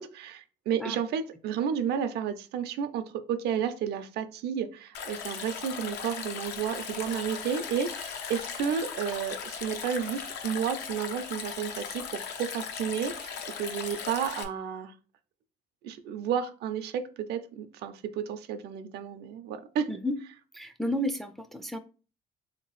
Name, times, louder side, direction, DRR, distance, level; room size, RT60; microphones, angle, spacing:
voice 1, 0.0-14.9 15.8-19.9, right 8 dB, 75° right, 10 dB, 0.5 m, -32 dB
Stream, 4.9-14.4, left 7 dB, 90° left, 0.6 m, -38 dB
voice 2, 20.5-21.8, equal, ahead, 7 dB, 0.3 m, -32 dB
3.4 x 2.8 x 3.0 m, 0.36 s
cardioid pair, 110°, 17 cm